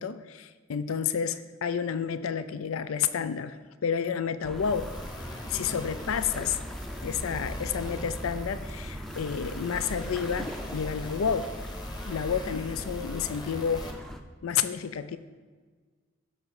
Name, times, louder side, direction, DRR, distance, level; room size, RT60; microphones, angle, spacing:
voice 1, 0.0-4.9 5.5-6.6 7.0-11.5 12.1-13.9 14.4-15.2, left 7 dB, 85° left, 13 dB, 0.4 m, -30 dB
sound 1, 4.4-14.2, equal, ahead, 0.5 m, -39 dB
sound 2, 4.5-13.9, left 1 dB, 20° left, 1.0 m, -44 dB
13.0 x 5.9 x 4.8 m, 1.5 s
head